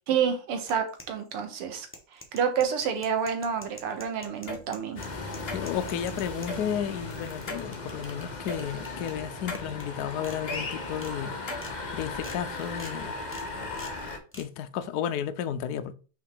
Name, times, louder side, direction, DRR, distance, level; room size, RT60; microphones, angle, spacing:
voice 1, 0.1-1.9 2.1-5.0, right 7 dB, 90° right, 2.1 m, -29 dB
sound 1, 0.6-1.4 1.8-6.5 6.9-8.2 8.6-9.1 9.5-9.8 10.2-10.4 10.8-11.1 11.5-11.7 12.2-12.4 12.8-12.9 13.3-13.5 13.8-14.0 14.3-14.5, left 1 dB, 10° left, 0.8 m, -46 dB
sound 2, 4.5-4.6 5.5-6.0 6.5-6.6 7.5-7.7 8.5-8.6 9.5-9.7 10.5-10.6 11.5-11.7, left 2 dB, 35° left, 1.2 m, -36 dB
sound 3, 5.0-14.2, left 3 dB, 50° left, 0.5 m, -37 dB
voice 2, 5.4-11.3 11.9-13.2 14.3-15.9, left 9 dB, 90° left, 0.8 m, -33 dB
5.7 x 4.4 x 4.8 m
omnidirectional pair, 2.4 m